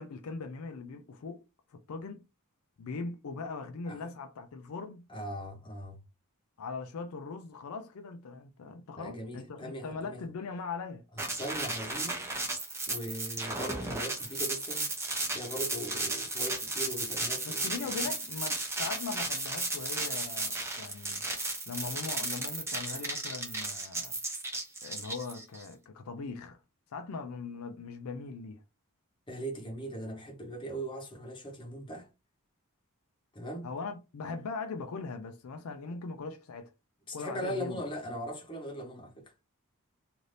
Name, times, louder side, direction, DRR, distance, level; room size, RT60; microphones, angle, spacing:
voice 1, 0.0-1.4 1.7-2.2 2.8-5.1 6.6-11.0 17.4-21.2 21.7-24.2 24.8-26.6 26.9-28.6 33.6-36.7 37.1-37.8, left 4 dB, 65° left, 0.4 m, -40 dB
voice 2, 5.1-6.0 8.9-10.2 11.2-12.2 12.9-14.9 15.3-17.9 29.3-32.1 33.3-33.7 37.1-39.3, equal, 20° left, 0.9 m, -39 dB
sound 1, 11.2-25.6, right 2 dB, 10° right, 0.6 m, -34 dB
2.7 x 2.5 x 3.2 m
head